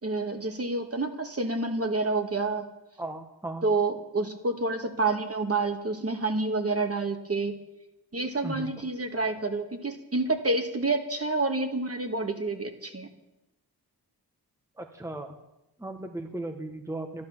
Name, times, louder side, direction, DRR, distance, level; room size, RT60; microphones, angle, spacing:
voice 1, 0.0-2.6 3.6-7.5 8.1-13.1, right 3 dB, 35° right, 6 dB, 2.0 m, -28 dB
voice 2, 3.0-3.6 8.4-8.8 9.1-9.2 14.8-15.4 15.8-17.3, right 2 dB, 5° right, 5 dB, 1.3 m, -36 dB
12.0 x 12.0 x 7.3 m, 0.92 s
cardioid pair, 65°, 41 cm